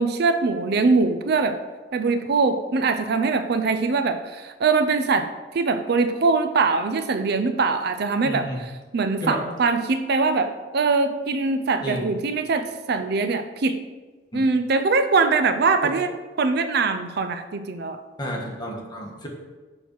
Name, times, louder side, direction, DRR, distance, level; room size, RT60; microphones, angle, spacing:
voice 1, 0.0-1.6 1.9-5.3 5.5-8.5 8.9-13.8 14.3-16.1 16.4-18.0, right 4 dB, 60° right, 9 dB, 0.5 m, -22 dB
voice 2, 8.2-8.6 9.2-9.4 11.8-12.1 14.3-14.4 15.8-15.9 18.2-19.3, equal, 25° left, -1 dB, 1.4 m, -31 dB
6.2 x 5.4 x 4.6 m, 1.3 s
head